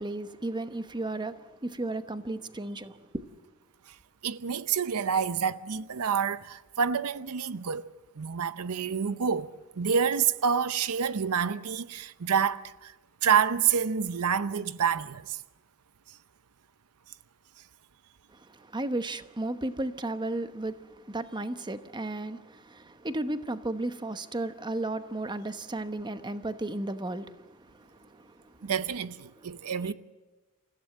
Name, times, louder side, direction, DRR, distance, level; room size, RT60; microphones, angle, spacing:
voice 1, 0.0-3.3 18.3-28.7 29.4-29.5 29.8-29.9, right 2 dB, 20° right, 1.0 m, -34 dB
voice 2, 4.2-7.9 8.2-9.5 9.8-12.9 13.2-15.4 28.6-29.9, right 7 dB, 75° right, 0.7 m, -28 dB
28.5 x 15.5 x 7.9 m
head